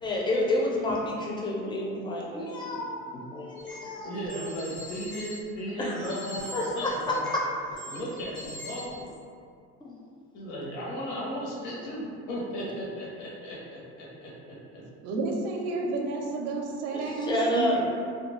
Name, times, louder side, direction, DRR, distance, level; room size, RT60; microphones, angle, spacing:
voice 1, 0.0-4.2 5.8-6.1 6.5-7.4 9.8-9.9 16.9-17.8, left 1 dB, 15° left, -3 dB, 0.4 m, -29 dB
sound 1, 3.6-3.7 4.2-5.3 6.0-7.4 7.7-9.1, equal, 85° left, 1.0 m, -41 dB
voice 2, 4.0-7.2 7.9-9.1 10.3-14.8 17.7-17.8, equal, 70° left, -6 dB, 0.7 m, -36 dB
voice 3, 14.8-17.8, right 3 dB, 55° right, 1 dB, 0.4 m, -31 dB
2.3 x 2.2 x 3.0 m, 2.3 s
cardioid pair, 120°, 30 cm